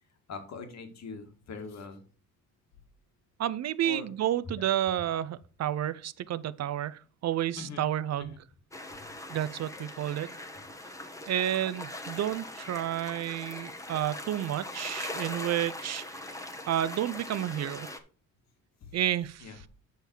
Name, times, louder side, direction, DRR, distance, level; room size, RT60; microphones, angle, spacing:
voice 1, 0.3-2.0 3.8-4.1 7.6-7.9 8.2-8.4 9.0-9.1 18.8-18.9 19.4-19.6, left 4 dB, 65° left, 2.0 m, -42 dB
voice 2, 3.4-8.3 9.3-10.3 11.3-16.0 16.7-17.9 18.9-19.7, right 11 dB, 60° right, 0.6 m, -31 dB
sound 1, 8.7-18.0, left 2 dB, 10° left, 1.2 m, -41 dB
8.8 x 5.7 x 4.6 m
cardioid pair, 90°, 30 cm